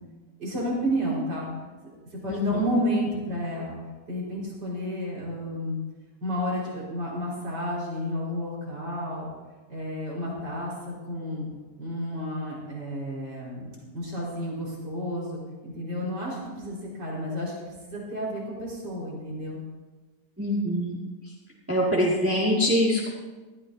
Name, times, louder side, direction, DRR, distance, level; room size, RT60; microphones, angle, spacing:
voice 1, 0.4-1.5 2.2-3.8 4.1-5.8 6.2-9.3 9.7-11.5 11.8-13.7 13.9-17.5 17.9-19.6, equal, 80° right, -5 dB, 5.6 m, -31 dB
voice 2, 2.3-2.8 20.4-21.0 21.7-23.1, left 1 dB, 10° right, -5 dB, 2.1 m, -24 dB
20.0 x 14.0 x 2.8 m, 1.3 s
omnidirectional pair, 1.8 m